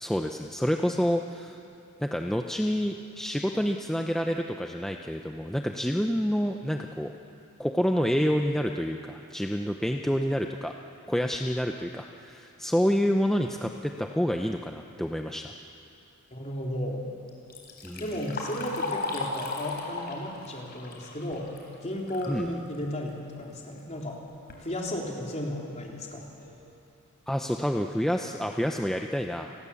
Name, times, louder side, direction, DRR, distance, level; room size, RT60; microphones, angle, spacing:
voice 1, 0.0-1.6 2.0-7.1 7.6-10.7 11.1-15.5 17.8-18.0 22.3-22.5 27.3-29.5, equal, ahead, 3 dB, 0.7 m, -28 dB
voice 2, 16.3-17.1 18.0-21.5 21.8-24.2 24.6-26.3, left 1 dB, 30° left, -1 dB, 3.5 m, -34 dB
Liquid, 17.3-22.4 22.8-22.9 23.8-23.9 24.3-24.6 25.2-25.3 25.8-25.9 26.4-26.6, left 3 dB, 50° left, 3.9 m, -36 dB
30.0 x 19.5 x 7.1 m, 2.6 s
head